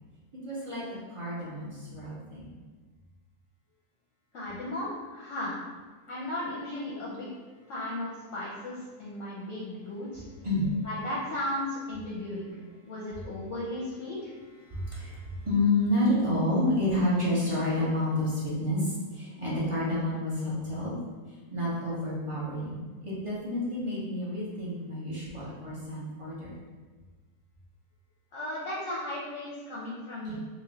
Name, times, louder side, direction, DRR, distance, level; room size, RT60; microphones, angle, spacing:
voice 1, 0.4-0.8 1.1-2.5 10.4-10.8 14.7-20.9 21.5-26.5 30.2-30.4, left 1 dB, 35° right, -8 dB, 0.5 m, -29 dB
voice 2, 4.3-5.6 6.1-7.3 7.7-10.2 10.8-12.5 12.8-14.3 28.3-30.4, left 1 dB, 60° left, -6 dB, 0.8 m, -35 dB
3.1 x 2.4 x 3.9 m, 1.4 s
omnidirectional pair, 1.8 m